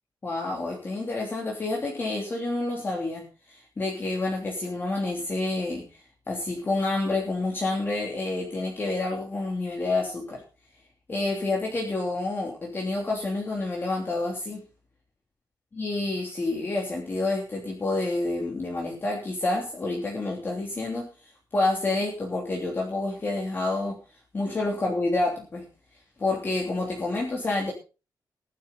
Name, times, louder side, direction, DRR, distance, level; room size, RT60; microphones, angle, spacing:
voice 1, 0.2-5.9 6.3-10.4 11.1-14.6 15.8-21.1 21.5-24.0 24.3-25.6 26.2-27.7, left 2 dB, 30° left, -2 dB, 3.1 m, -28 dB
16.0 x 11.5 x 4.1 m, 0.34 s
wide cardioid pair, 170°, 7 cm